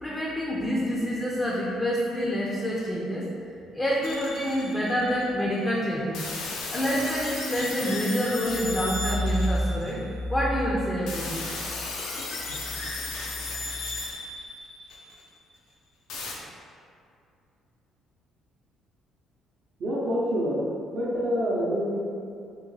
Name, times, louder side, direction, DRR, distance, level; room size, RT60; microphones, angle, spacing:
voice 1, 0.0-3.3 3.7-6.2 6.7-10.0 10.3-11.5, equal, 15° left, -5 dB, 0.4 m, -27 dB
sound 1, 4.0-5.2 6.1-10.2 11.1-15.2 16.1-16.3, left 3 dB, 85° left, 0.5 m, -35 dB
voice 2, 19.8-22.0, equal, 55° right, -7 dB, 0.6 m, -27 dB
3.5 x 2.1 x 3.1 m, 2.4 s
cardioid pair, 115°, 0 cm